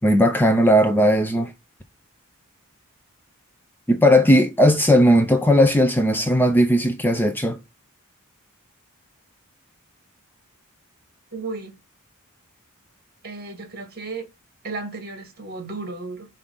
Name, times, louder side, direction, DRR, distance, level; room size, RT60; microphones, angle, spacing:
voice 1, 0.0-1.5 3.9-7.6, equal, 10° left, 0.6 m, -17 dB
voice 2, 11.3-11.8 13.2-14.3 14.6-16.3, right 3 dB, 45° right, 1.9 m, -34 dB
5.6 x 3.8 x 5.3 m
head